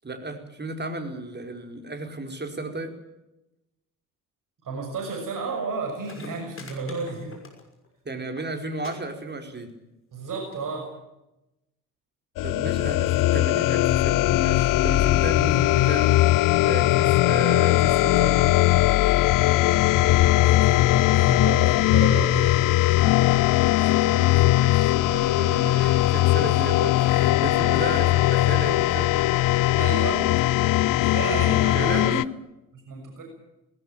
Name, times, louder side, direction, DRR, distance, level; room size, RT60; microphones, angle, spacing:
voice 1, 0.0-3.0 8.0-9.7 12.4-16.2 16.6-18.6 23.7-29.2 31.7-32.3, right 2 dB, 25° right, 5 dB, 4.7 m, -34 dB
voice 2, 4.6-7.4 10.1-10.9 19.6-22.8 23.5-23.8 26.5-26.6 28.1-28.2 29.8-30.3 31.0-32.1 32.7-33.2, right 4 dB, 45° right, 2 dB, 6.6 m, -33 dB
sound 1, 5.7-5.8 6.0-7.9 8.2-8.5 8.8-8.9 9.2-9.7 10.5-10.6, left 4 dB, 30° left, 6.0 m, -45 dB
sound 2, 12.4-32.2, left 16 dB, 50° left, 0.7 m, -20 dB
19.5 x 17.5 x 9.0 m, 0.91 s
figure-of-eight pair, 45°, 43 cm